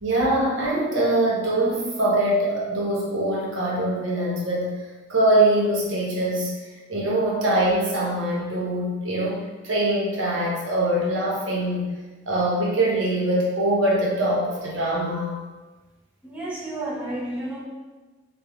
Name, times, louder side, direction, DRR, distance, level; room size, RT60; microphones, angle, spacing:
voice 1, 0.0-4.7 5.1-6.5 6.9-9.4 9.6-11.9 12.3-15.4, right 1 dB, 80° right, -4 dB, 0.8 m, -23 dB
voice 2, 16.2-17.6, right 1 dB, 5° right, -7 dB, 0.5 m, -31 dB
3.4 x 2.2 x 3.4 m, 1.2 s
head